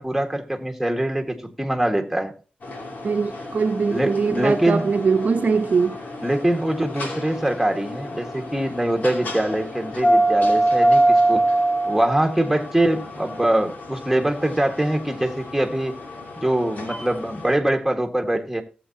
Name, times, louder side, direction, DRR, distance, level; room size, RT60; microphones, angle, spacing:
voice 1, 0.0-2.3 3.9-4.8 6.2-11.5 11.9-16.0 16.4-18.6, right 1 dB, 5° right, 1.8 m, -23 dB
sound 1, 2.6-17.5, right 1 dB, 70° left, 2.8 m, -25 dB
voice 2, 3.0-6.0, right 5 dB, 60° right, 0.9 m, -21 dB
18.0 x 7.6 x 2.9 m
wide cardioid pair, 90°, 3 cm